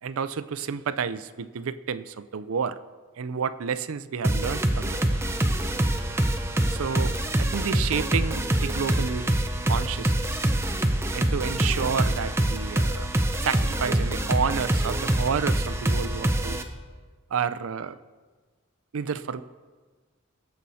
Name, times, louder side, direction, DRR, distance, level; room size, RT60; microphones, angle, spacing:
voice 1, 0.0-2.8 3.2-5.2 6.7-9.3 9.7-10.4 11.1-13.1 13.4-16.6 17.3-18.0 18.9-19.4, right 6 dB, 80° right, 15 dB, 0.5 m, -30 dB
sound 1, 4.2-16.6, right 1 dB, 10° right, 0.6 m, -25 dB
18.0 x 6.9 x 4.2 m, 1.4 s
head